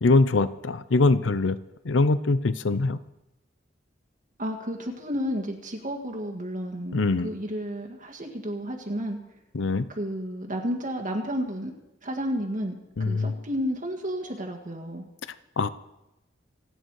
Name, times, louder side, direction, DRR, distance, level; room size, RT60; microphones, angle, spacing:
voice 1, 0.0-1.6 1.8-3.0 6.9-7.3 9.5-9.8 13.0-13.4 15.6-15.7, left 3 dB, 75° left, 14 dB, 0.6 m, -22 dB
voice 2, 4.4-9.2 9.9-11.7 12.0-12.7 13.0-15.1, equal, 45° right, 1 dB, 1.7 m, -31 dB
27.5 x 9.1 x 4.7 m, 0.93 s
head